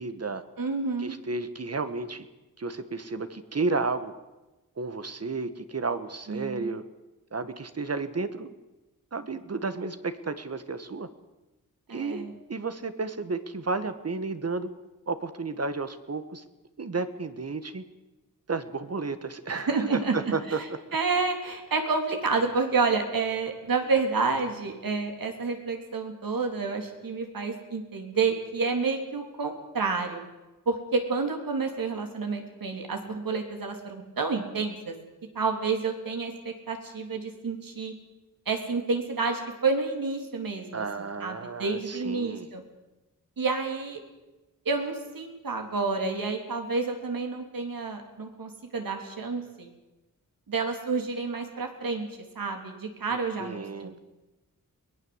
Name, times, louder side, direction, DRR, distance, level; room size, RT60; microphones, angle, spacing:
voice 1, 0.0-0.4 1.0-2.3 2.6-4.1 4.8-6.8 7.3-8.5 9.1-11.1 11.9-14.7 15.1-16.5 16.8-17.8 18.5-20.6 40.7-42.5 53.4-54.0, right 3 dB, 45° right, 11 dB, 1.5 m, -32 dB
voice 2, 0.6-1.1 6.3-6.7 11.9-12.3 19.5-20.2 20.9-30.2 30.7-35.0 35.4-37.9 38.5-42.6 43.4-44.0 44.7-49.7 50.5-52.1 52.4-54.0, right 4 dB, 75° right, 4 dB, 3.6 m, -29 dB
22.5 x 19.0 x 8.0 m, 1.1 s
wide cardioid pair, 115°, 35 cm